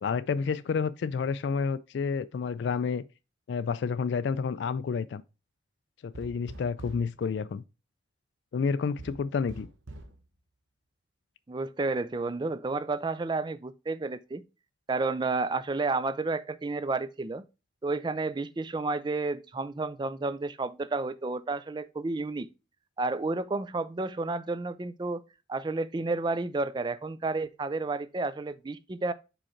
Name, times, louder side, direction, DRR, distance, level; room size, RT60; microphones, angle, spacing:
voice 1, 0.0-3.0 3.5-5.2 6.0-7.6 8.5-9.7, left 5 dB, 65° left, 0.3 m, -30 dB
sound 1, 6.1-7.1 9.0-10.2, right 2 dB, 85° right, 1.0 m, -44 dB
voice 2, 11.5-14.4 14.9-17.4 17.8-22.5 23.0-25.2 25.5-29.1, right 3 dB, 25° right, 0.3 m, -31 dB
5.1 x 4.8 x 4.3 m
head